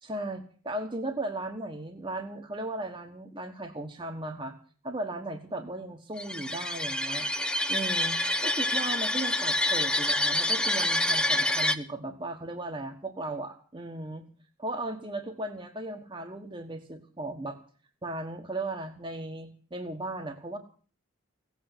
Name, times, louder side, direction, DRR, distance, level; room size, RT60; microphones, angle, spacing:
voice 1, 0.0-4.5 4.8-7.3 7.7-14.3 14.6-17.6 18.0-20.6, right 2 dB, 20° right, 4 dB, 1.3 m, -36 dB
sound 1, 6.2-11.7, left 1 dB, 5° left, 0.7 m, -27 dB
17.0 x 8.3 x 9.9 m, 0.42 s
head